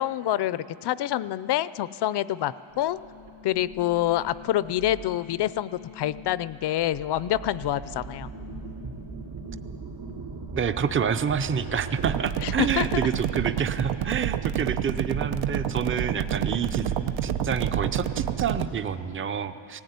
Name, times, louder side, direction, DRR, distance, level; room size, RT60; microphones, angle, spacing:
voice 1, 0.0-3.0 3.4-8.3 12.4-13.1 16.8-16.9, left 13 dB, 60° left, 17 dB, 0.5 m, -27 dB
sound 1, 2.7-13.4 13.8-18.9, right 2 dB, 55° right, 3.2 m, -41 dB
voice 2, 10.5-17.0 17.2-19.8, right 7 dB, 25° right, 11 dB, 0.6 m, -28 dB
sound 2, 12.0-18.7, right 10 dB, 75° right, 0.8 m, -28 dB
18.0 x 15.5 x 9.5 m, 2.5 s
cardioid pair, 145°, 47 cm